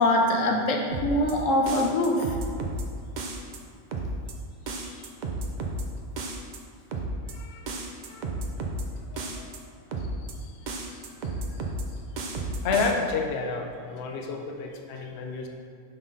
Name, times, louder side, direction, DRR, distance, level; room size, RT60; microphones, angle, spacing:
voice 1, 0.0-2.3, left 1 dB, 75° left, 2 dB, 1.1 m, -23 dB
sound 1, 0.9-1.3 1.7-2.8 3.2-3.6 3.9-4.3 4.7-5.8 6.2-6.6 6.9-7.3 7.7-8.8 9.2-9.6 9.9-10.3 10.7-11.8 12.2-12.9, right 3 dB, 50° right, 0.5 m, -32 dB
voice 2, 7.2-7.8 8.1-8.3 9.1-9.5 10.4-11.0 11.2-11.4 12.6-15.5, left 4 dB, 60° left, 2 dB, 0.8 m, -31 dB
5.7 x 5.5 x 3.8 m, 2.2 s
omnidirectional pair, 1.3 m